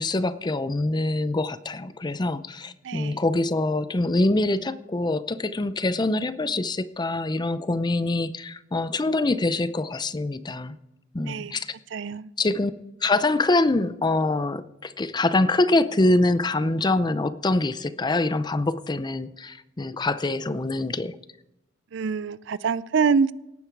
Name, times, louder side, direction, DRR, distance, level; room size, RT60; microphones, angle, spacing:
voice 1, 0.0-10.8 11.1-11.7 12.4-12.7 13.0-21.1, left 2 dB, 25° left, 14 dB, 0.5 m, -24 dB
voice 2, 2.8-3.2 11.3-11.6 11.9-12.3 21.9-23.3, right 5 dB, 70° right, 18 dB, 0.5 m, -25 dB
17.5 x 9.7 x 4.6 m, 0.91 s
head